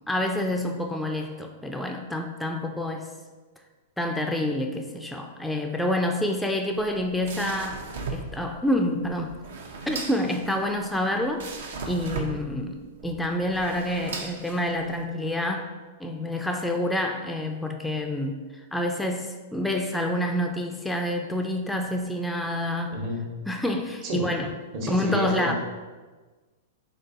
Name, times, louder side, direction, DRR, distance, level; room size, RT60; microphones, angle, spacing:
voice 1, 0.1-3.1 4.0-7.8 8.1-9.4 9.9-11.5 11.9-23.0 23.5-24.5 24.9-25.5, left 1 dB, 5° left, 3 dB, 0.3 m, -28 dB
sound 1, 6.7-15.0, right 4 dB, 70° right, 0.5 m, -37 dB
voice 2, 22.9-23.2 24.0-24.3 24.7-25.5, equal, 50° right, 0 dB, 0.9 m, -30 dB
3.7 x 3.7 x 2.6 m, 1.3 s
hypercardioid pair, 115°, 0 cm